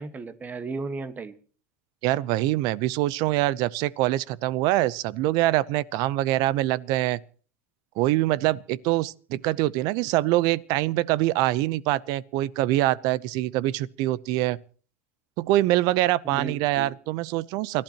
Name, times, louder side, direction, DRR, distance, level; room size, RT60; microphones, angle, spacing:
voice 1, 0.0-1.3 16.2-16.9, right 3 dB, 20° right, 1.4 m, -35 dB
voice 2, 2.0-7.2 8.0-14.6 15.4-17.8, right 16 dB, 60° right, 0.7 m, -24 dB
29.0 x 12.0 x 2.9 m
supercardioid pair, 125°, 8 cm